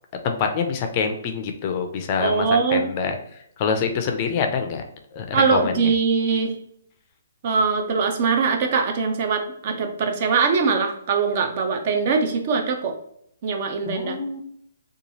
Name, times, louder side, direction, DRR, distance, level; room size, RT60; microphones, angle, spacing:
voice 1, 0.2-3.2 3.6-4.8 5.1-5.9 13.9-14.4, left 5 dB, 35° left, 5 dB, 0.4 m, -25 dB
voice 2, 2.2-2.9 5.3-6.6 7.4-12.9 13.4-14.2, right 5 dB, 40° right, 5 dB, 0.5 m, -22 dB
2.9 x 2.3 x 2.7 m, 0.72 s
hypercardioid pair, 155°, 0 cm